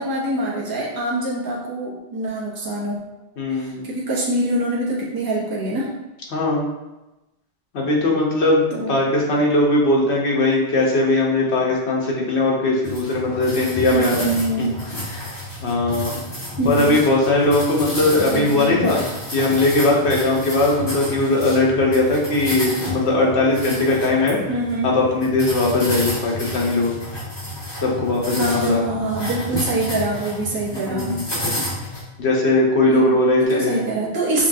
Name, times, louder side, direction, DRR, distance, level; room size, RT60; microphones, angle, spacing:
voice 1, 0.0-3.0 3.5-5.9 8.7-9.0 13.9-15.0 16.6-17.0 18.3-18.7 24.5-24.9 28.4-31.2 32.9-33.0 33.4-34.5, right 2 dB, 20° right, -6 dB, 0.8 m, -24 dB
voice 2, 3.4-3.8 6.3-6.7 7.7-14.3 14.6-14.7 15.1-15.3 15.6-16.2 16.6-19.0 19.3-24.4 24.8-26.9 27.7-28.8 30.7-31.3 32.2-33.8, left 2 dB, 70° left, -2 dB, 1.2 m, -19 dB
sound 1, 12.8-32.0, left 1 dB, 45° left, 1.8 m, -30 dB
5.7 x 2.3 x 2.6 m, 1.0 s
omnidirectional pair, 1.2 m